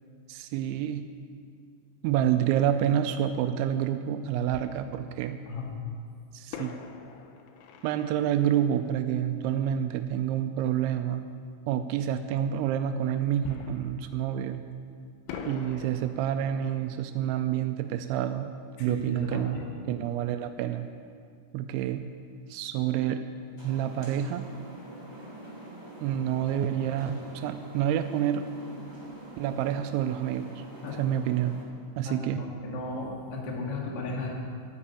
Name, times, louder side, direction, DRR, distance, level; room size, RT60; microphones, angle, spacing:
voice 1, 0.3-1.1 2.0-5.4 6.3-6.7 7.8-11.3 11.7-14.6 15.5-18.5 18.8-20.9 21.5-22.0 22.5-23.2 23.6-24.4 26.0-28.5 29.4-30.6 31.0-31.6 32.0-32.4, right 10 dB, 90° right, 8 dB, 2.9 m, -28 dB
Fireworks, 3.2-3.3 4.5-5.6 6.5-10.0 13.4-14.9 15.3-19.8 20.1-20.2 20.7-20.9, left 5 dB, 85° left, 3.3 m, -46 dB
voice 2, 18.8-19.7 30.8-31.0 32.0-34.4, left 3 dB, 40° left, -2 dB, 2.4 m, -35 dB
sound 1, 23.6-31.6, right 1 dB, 10° left, 2.1 m, -45 dB
13.0 x 9.8 x 8.5 m, 2.3 s
omnidirectional pair, 5.2 m